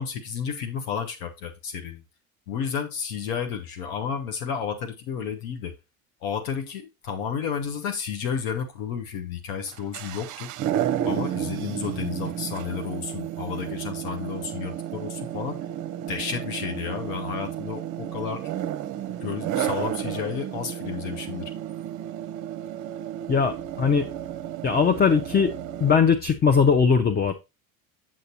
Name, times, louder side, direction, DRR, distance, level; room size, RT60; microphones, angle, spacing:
voice 1, 0.0-2.0 2.5-5.7 6.2-10.5 11.0-15.7 16.1-18.5 19.2-21.5, left 7 dB, 75° left, 1.2 m, -32 dB
sound 1, 9.7-26.0, right 11 dB, 45° right, 0.7 m, -32 dB
voice 2, 23.3-24.1 24.6-25.5 25.8-27.3, left 6 dB, 25° left, 0.6 m, -20 dB
7.5 x 6.7 x 2.8 m
hypercardioid pair, 80°, 41 cm